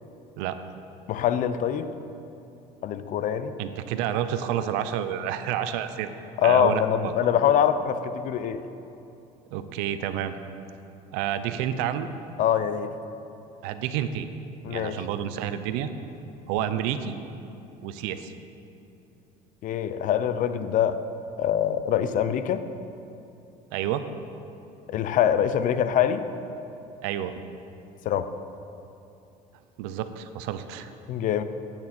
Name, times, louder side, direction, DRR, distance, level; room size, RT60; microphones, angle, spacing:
voice 1, 1.1-1.9 2.8-3.6 6.4-8.6 12.4-12.9 14.6-15.0 19.6-21.0 21.4-22.6 24.9-26.2 28.0-28.3 31.1-31.4, left 9 dB, 55° left, 12 dB, 0.7 m, -24 dB
voice 2, 3.6-6.1 6.4-7.1 9.5-10.3 11.1-12.1 13.6-14.3 14.7-15.9 16.5-17.2 17.8-18.3 23.7-24.0 27.0-27.4 29.8-30.9, right 10 dB, 85° right, 10 dB, 0.7 m, -29 dB
16.0 x 8.9 x 4.4 m, 2.8 s
cardioid pair, 110°, 16 cm